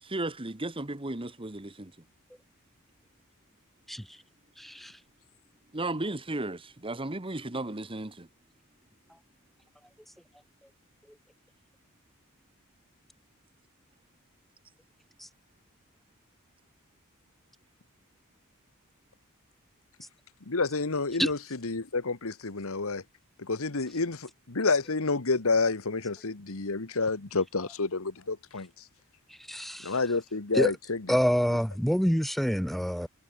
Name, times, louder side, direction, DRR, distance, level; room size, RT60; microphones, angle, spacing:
voice 1, 0.0-2.0 5.7-8.3, right 2 dB, 25° right, 1.6 m, -35 dB
voice 2, 4.6-4.9 21.2-21.3 29.5-30.0 30.5-30.7 31.1-33.1, equal, ahead, 0.7 m, -26 dB
voice 3, 20.5-23.0 23.4-28.7 29.8-31.1, left 3 dB, 70° left, 1.5 m, -29 dB
head